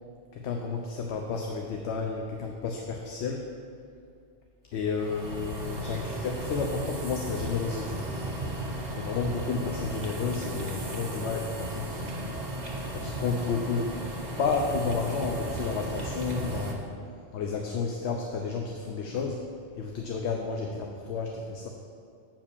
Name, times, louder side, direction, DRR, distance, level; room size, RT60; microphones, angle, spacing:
voice 1, 0.3-3.5 4.7-8.0 8.9-12.3 12.9-14.0 14.4-16.9 17.3-19.5 19.7-21.7, left 5 dB, 75° left, 2 dB, 0.9 m, -31 dB
sound 1, 4.8-16.7, right 1 dB, 40° right, 1.2 m, -35 dB
7.4 x 4.9 x 6.9 m, 2.4 s
omnidirectional pair, 1.2 m